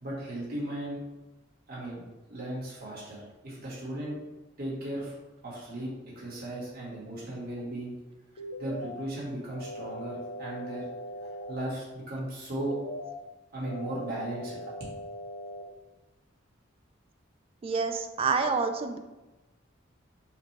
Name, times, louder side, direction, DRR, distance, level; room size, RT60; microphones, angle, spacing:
voice 1, 0.0-1.0 1.7-2.0 2.3-4.2 4.6-5.1 5.4-7.9 8.6-10.9 11.2-12.8 13.5-14.7, right 1 dB, 50° right, -6 dB, 1.4 m, -36 dB
sound 1, 8.4-9.0 9.5-11.5 12.5-13.1 13.6-15.6, equal, 90° left, 0.7 m, -40 dB
voice 2, 17.6-19.0, right 4 dB, 30° right, 7 dB, 0.3 m, -28 dB
5.6 x 2.2 x 3.3 m, 1.1 s
head